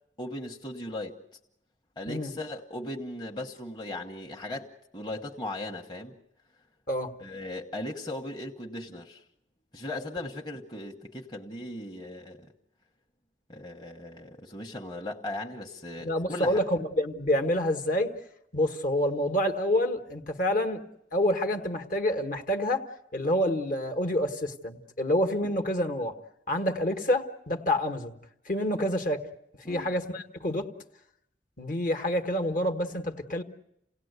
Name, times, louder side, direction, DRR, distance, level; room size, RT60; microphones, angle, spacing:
voice 1, 0.2-1.2 2.0-6.2 7.2-9.2 9.7-12.5 13.5-16.6 25.4-25.6 29.6-29.9, left 1 dB, 25° left, 1.2 m, -38 dB
voice 2, 16.0-18.1 18.5-20.8 21.1-22.8 23.1-26.1 26.5-28.1 28.4-29.2 29.7-30.7 31.6-33.4, left 1 dB, 45° left, 1.4 m, -27 dB
28.5 x 17.5 x 8.1 m
head